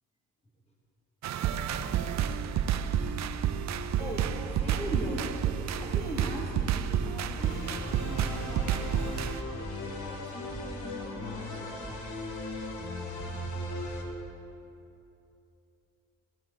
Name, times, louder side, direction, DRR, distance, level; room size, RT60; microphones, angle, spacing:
sound 1, 1.2-9.4, right 8 dB, 65° right, 0.7 m, -30 dB
voice 1, 4.0-5.2 5.8-9.2 9.8-11.9, equal, 20° left, -2 dB, 2.4 m, -41 dB
sound 2, 4.0-14.3, right 3 dB, 15° right, 0.6 m, -47 dB
sound 3, 7.4-14.0, left 2 dB, 75° left, 1.9 m, -38 dB
17.0 x 13.0 x 4.1 m, 2.9 s
cardioid pair, 90°, 30 cm